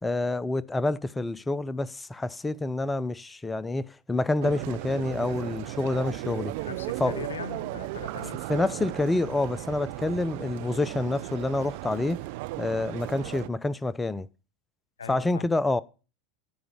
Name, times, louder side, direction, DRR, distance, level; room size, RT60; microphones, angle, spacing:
voice 1, 0.0-6.5 7.0-7.2 8.5-12.2 12.6-14.3 15.1-15.8, left 2 dB, 10° left, 0.6 m, -28 dB
sound 1, 4.4-13.5, right 19 dB, 55° right, 0.6 m, -36 dB
voice 2, 6.6-8.4 15.0-15.5, left 6 dB, 75° left, 0.9 m, -40 dB
14.5 x 5.0 x 7.2 m
figure-of-eight pair, 80°, 0 cm